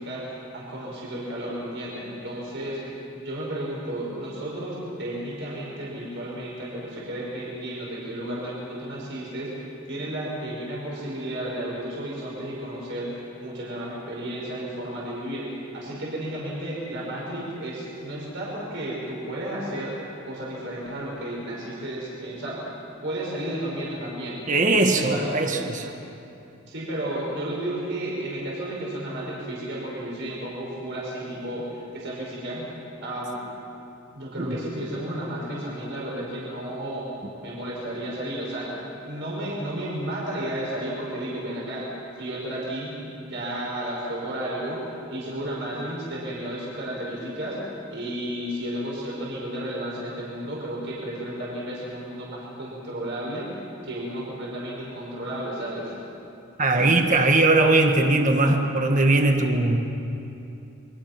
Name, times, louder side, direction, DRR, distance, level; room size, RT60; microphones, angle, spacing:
voice 1, 0.0-20.0 20.2-22.6 22.8-24.5 24.9-25.3 26.7-32.7 33.0-33.4 34.1-37.1 37.4-41.8 42.1-44.8 45.1-47.6 47.9-53.5 53.8-55.9, right 1 dB, 55° right, -5 dB, 5.5 m, -33 dB
voice 2, 24.5-25.9 34.4-34.6 56.6-59.8, right 2 dB, 35° right, 4 dB, 1.4 m, -20 dB
28.5 x 23.0 x 6.0 m, 2.8 s
head